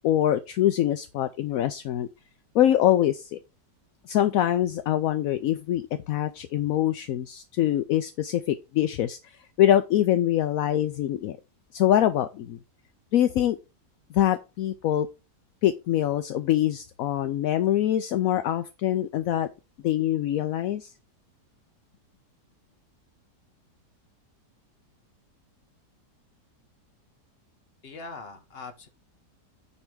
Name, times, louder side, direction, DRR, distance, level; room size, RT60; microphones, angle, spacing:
voice 1, 0.0-2.1 2.5-3.4 4.1-11.4 11.7-12.6 13.1-13.6 14.1-15.1 15.6-19.5 19.8-20.9, left 12 dB, 70° left, 0.9 m, -24 dB
voice 2, 27.8-28.9, left 3 dB, 40° left, 1.4 m, -41 dB
9.7 x 3.4 x 6.1 m
omnidirectional pair, 1.8 m